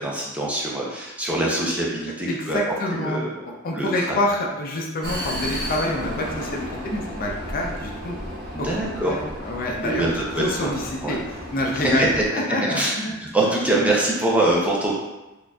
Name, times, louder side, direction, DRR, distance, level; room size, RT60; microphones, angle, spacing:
voice 1, 0.0-2.6 2.9-3.3 3.7-4.2 8.5-9.1 9.8-10.8 11.0-11.1 11.8-14.9, right 1 dB, 5° right, -4 dB, 0.6 m, -24 dB
voice 2, 2.3-8.2 8.6-10.1 10.4-13.1, left 1 dB, 45° left, -1 dB, 0.5 m, -27 dB
Vehicle, 5.0-12.3, equal, 50° right, 0.7 m, -33 dB
4.3 x 2.5 x 2.3 m, 1.0 s
head